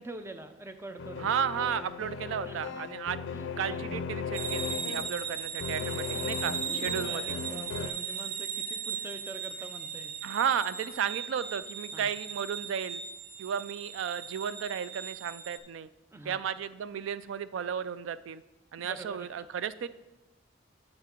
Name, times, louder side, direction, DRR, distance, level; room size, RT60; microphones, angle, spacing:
voice 1, 0.0-1.3 2.4-2.8 3.3-3.8 5.8-6.0 6.7-10.2 11.9-12.1 16.1-16.4 18.8-19.3 19.8-19.9, right 2 dB, 15° right, 8 dB, 0.4 m, -45 dB
sound 1, 1.0-7.9, left 5 dB, 70° left, 0.4 m, -37 dB
voice 2, 1.2-3.2 3.6-7.4 10.2-13.0 13.4-15.9 16.3-18.4 18.7-19.9, right 8 dB, 85° right, 15 dB, 0.3 m, -33 dB
sound 2, 4.3-15.6, right 6 dB, 50° right, 0.8 m, -38 dB
7.7 x 5.9 x 4.4 m, 1.1 s
head